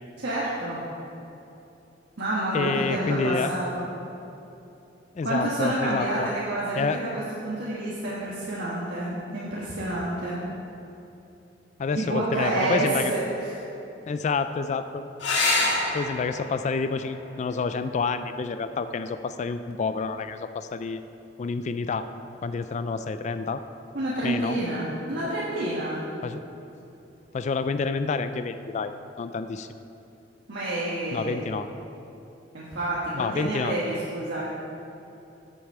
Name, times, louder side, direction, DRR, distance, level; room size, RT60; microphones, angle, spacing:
voice 1, 0.2-0.8 2.2-3.8 5.2-10.4 11.9-13.5 23.9-26.0 30.5-31.4 32.5-34.4, right 1 dB, 65° right, -8 dB, 1.5 m, -28 dB
voice 2, 2.5-3.5 5.2-6.3 6.8-7.0 11.8-13.1 14.1-15.0 15.9-21.0 21.4-22.1 22.4-23.6 24.2-24.6 26.2-26.4 27.3-29.8 31.1-31.7 33.1-33.7, left 4 dB, 40° left, 10 dB, 0.3 m, -28 dB
sound 1, 15.2-20.2 22.1-22.7 26.2-26.3 26.6-26.7, left 2 dB, 70° left, 1.8 m, -30 dB
9.2 x 8.2 x 5.5 m, 2.9 s
head